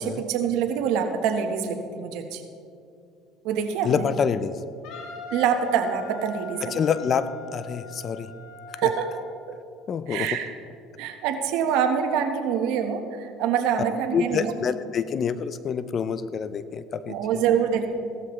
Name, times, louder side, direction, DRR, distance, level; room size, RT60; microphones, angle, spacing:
voice 1, 0.0-2.4 3.4-4.0 5.3-6.8 8.8-9.2 9.5-9.6 10.1-10.5 11.0-14.5 17.1-17.9, right 7 dB, 75° right, 5 dB, 1.2 m, -25 dB
voice 2, 3.8-4.6 6.7-7.3 7.5-8.3 8.8-8.9 9.9-10.3 14.1-17.4, left 7 dB, 40° left, 13 dB, 0.6 m, -27 dB
Wind instrument woodwind instrument, 4.8-9.3, left 3 dB, 70° left, 2.4 m, -41 dB
16.5 x 13.0 x 3.2 m, 2.5 s
supercardioid pair, 110°, 0 cm